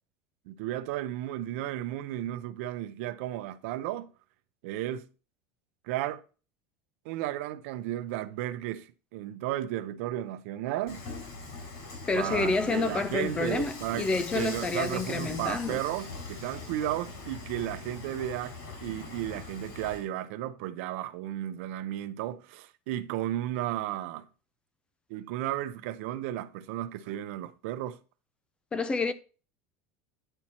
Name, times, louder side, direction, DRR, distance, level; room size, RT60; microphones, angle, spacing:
voice 1, 0.5-4.1 4.6-5.1 5.8-6.2 7.0-11.1 12.1-24.3 25.1-28.0, right 13 dB, 70° right, 0.7 m, -34 dB
Dishes pots and pans / Frying (food), 10.9-20.1, left 3 dB, 65° left, 4.8 m, -41 dB
voice 2, 12.1-15.8 28.7-29.1, left 3 dB, 15° left, 0.3 m, -29 dB
9.9 x 4.5 x 4.3 m
cardioid pair, 175°, 8 cm